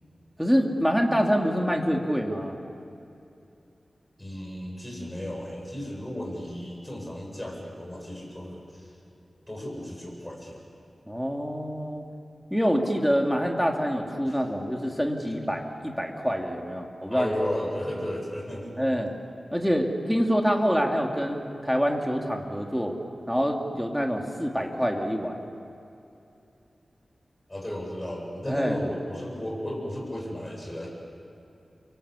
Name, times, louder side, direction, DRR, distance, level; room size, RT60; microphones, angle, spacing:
voice 1, 0.4-2.6 11.1-12.0 12.5-17.3 18.8-19.1 19.5-22.9 23.3-25.4 28.5-28.8, equal, ahead, 1 dB, 2.9 m, -26 dB
voice 2, 4.2-8.9 9.5-10.6 14.2-14.4 17.1-18.7 27.5-30.9, left 1 dB, 15° left, -1 dB, 7.7 m, -34 dB
29.5 x 23.5 x 8.4 m, 2.7 s
wide cardioid pair, 85°, 0 cm